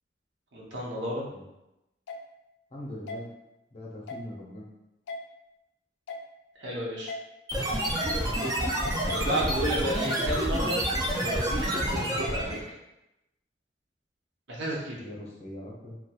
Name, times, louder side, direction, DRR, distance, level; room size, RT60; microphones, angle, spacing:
voice 1, 0.5-1.3 6.6-7.1 9.1-10.8 11.1-12.6 14.5-15.1, right 1 dB, 85° right, -4 dB, 0.7 m, -32 dB
sound 1, 2.1-2.2 3.1-3.2 4.1-4.2 5.1-5.2 6.1-6.2 7.1-7.2 8.1-8.2 9.1-9.2 10.1-10.2, left 3 dB, 85° left, 0.3 m, -36 dB
voice 2, 2.7-3.3 3.7-4.6 15.0-16.0, left 1 dB, 35° left, -4 dB, 0.6 m, -41 dB
sound 2, 7.5-12.7, right 1 dB, 20° right, 0.4 m, -28 dB
2.8 x 2.2 x 2.3 m, 0.92 s
head